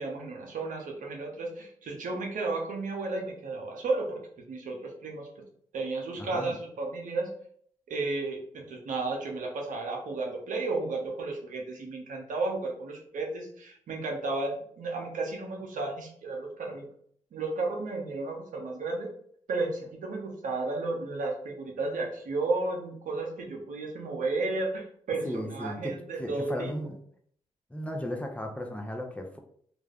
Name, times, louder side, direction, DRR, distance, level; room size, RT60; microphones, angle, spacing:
voice 1, 0.0-4.2 4.5-5.3 5.7-7.3 7.9-16.9 17.3-19.1 19.5-26.7, right 3 dB, 70° right, 0 dB, 0.7 m, -33 dB
voice 2, 6.2-6.5 25.2-27.0 27.7-29.4, equal, 10° left, 2 dB, 0.6 m, -35 dB
2.4 x 2.2 x 3.4 m, 0.62 s
supercardioid pair, 45°, 14 cm